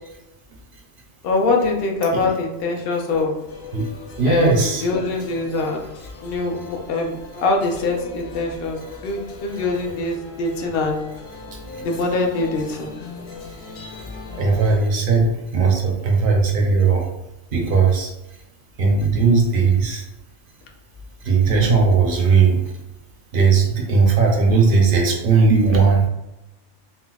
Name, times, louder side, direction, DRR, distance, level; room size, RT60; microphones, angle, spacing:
voice 1, 1.2-3.3 4.2-11.0 11.8-12.9, left 3 dB, 60° left, 1 dB, 0.6 m, -23 dB
sound 1, 3.5-14.8, left 3 dB, 85° left, 1.1 m, -39 dB
voice 2, 4.2-4.8 14.3-17.1 17.5-18.1 18.8-20.0 21.2-22.6 23.3-26.1, right 4 dB, 60° right, 0 dB, 0.6 m, -17 dB
3.9 x 2.0 x 2.2 m, 0.94 s
omnidirectional pair, 1.3 m